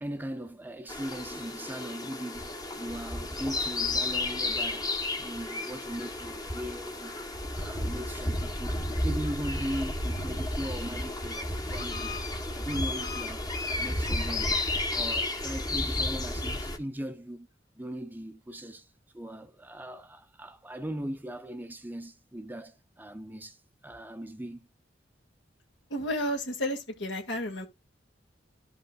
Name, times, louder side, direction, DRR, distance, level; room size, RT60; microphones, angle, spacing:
voice 1, 0.0-2.5 2.8-4.9 5.2-7.2 7.5-12.2 12.5-14.6 14.9-17.5 17.8-18.9 19.1-23.6 23.8-24.7, equal, 10° right, 0.6 m, -39 dB
sound 1, 0.9-16.8, left 2 dB, 20° left, 1.1 m, -32 dB
voice 2, 25.9-27.7, equal, 70° left, 1.8 m, -31 dB
14.0 x 5.4 x 2.3 m
head